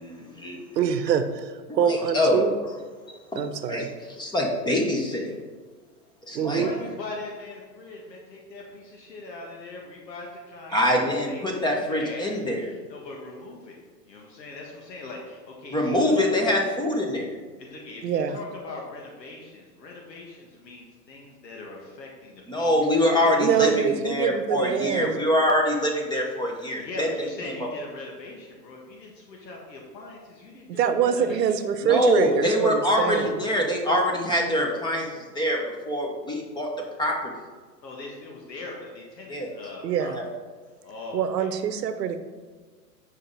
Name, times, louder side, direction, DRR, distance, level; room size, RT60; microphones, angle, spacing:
voice 1, 0.0-0.6 1.7-2.4 3.3-3.4 3.7-3.9 4.2-5.4 6.3-6.6 10.7-12.7 15.7-17.4 22.5-27.7 31.8-35.6 35.8-36.7 37.0-37.3 39.3-39.5 40.2-40.3, left 1 dB, 10° left, 0 dB, 1.1 m, -24 dB
voice 2, 0.8-2.5 3.4-3.9 6.3-6.7 10.7-10.8 18.0-18.4 23.4-25.2 30.7-33.4 39.8-40.2 41.1-42.2, right 8 dB, 75° right, 10 dB, 0.9 m, -25 dB
voice 3, 6.5-11.0 11.3-13.8 14.0-16.6 17.6-23.4 26.6-31.7 37.8-40.1 40.8-41.5, left 3 dB, 80° left, -1 dB, 1.7 m, -41 dB
8.2 x 5.4 x 4.0 m, 1.4 s
hypercardioid pair, 125°, 50 cm